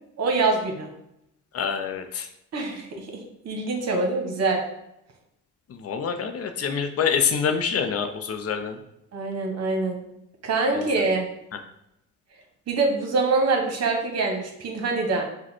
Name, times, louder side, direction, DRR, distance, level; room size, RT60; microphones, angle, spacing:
voice 1, 0.2-0.9 2.5-4.6 9.1-10.0 10.4-11.3 12.7-15.2, right 3 dB, 55° right, 2 dB, 1.1 m, -25 dB
voice 2, 1.5-2.3 5.7-8.8 10.7-10.9 11.5-11.6, left 6 dB, 50° left, 6 dB, 0.6 m, -26 dB
5.0 x 2.2 x 4.3 m, 0.84 s
cardioid pair, 90°, 30 cm